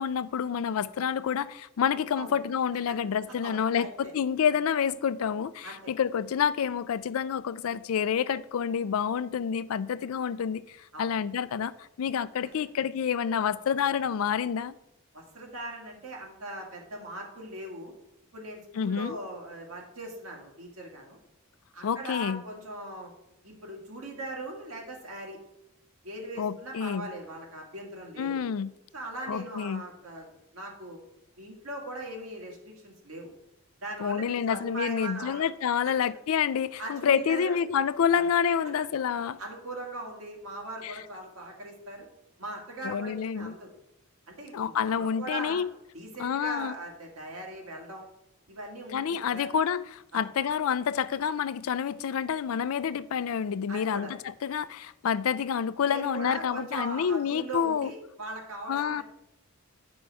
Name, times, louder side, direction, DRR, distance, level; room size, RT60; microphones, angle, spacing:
voice 1, 0.0-11.7 12.0-14.7 18.8-19.2 21.8-22.4 26.4-27.1 28.2-28.7 29.3-29.8 34.0-39.4 40.8-40.9 42.8-43.5 44.5-45.7 46.2-46.7 48.9-57.9 58.7-59.0, left 7 dB, 75° left, 0.4 m, -28 dB
voice 2, 3.4-4.1 5.6-5.9 10.9-11.1 12.4-12.5 15.1-17.9 18.3-21.2 21.7-23.1 23.4-25.4 26.0-28.5 28.9-30.3 30.5-31.0 31.4-33.3 33.8-35.4 36.8-37.6 38.1-38.2 38.6-38.7 39.4-42.1 42.4-43.7 44.3-45.6 45.9-48.1 48.5-49.5 50.1-50.2 53.7-54.1 55.8-59.0, right 1 dB, 75° right, 2.0 m, -40 dB
9.7 x 5.2 x 4.6 m
head